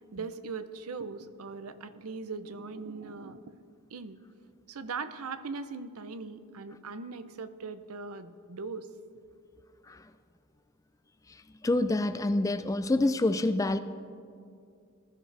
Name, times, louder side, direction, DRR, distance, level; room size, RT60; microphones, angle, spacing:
voice 1, 0.1-3.4 3.9-4.2 4.7-8.9, right 4 dB, 85° right, 12 dB, 0.6 m, -40 dB
voice 2, 11.6-13.8, left 2 dB, 15° left, 12 dB, 0.3 m, -26 dB
19.5 x 13.0 x 3.3 m, 2.4 s
head